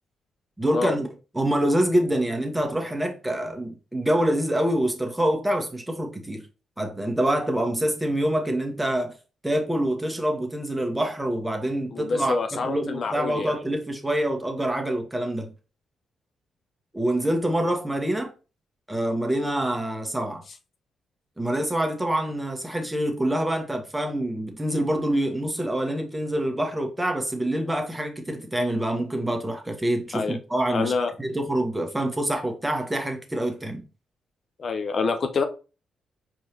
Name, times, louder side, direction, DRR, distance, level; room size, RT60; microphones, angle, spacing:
voice 1, 0.6-1.1 1.3-6.4 6.8-9.1 9.4-15.5 16.9-18.3 18.9-20.4 21.4-30.9 31.2-33.8, right 1 dB, 10° right, 1.2 m, -26 dB
voice 2, 11.9-13.5 30.1-30.4 30.7-31.1 34.6-35.4, left 4 dB, 55° left, 0.5 m, -26 dB
4.6 x 3.2 x 2.9 m
supercardioid pair, 50°, 0 cm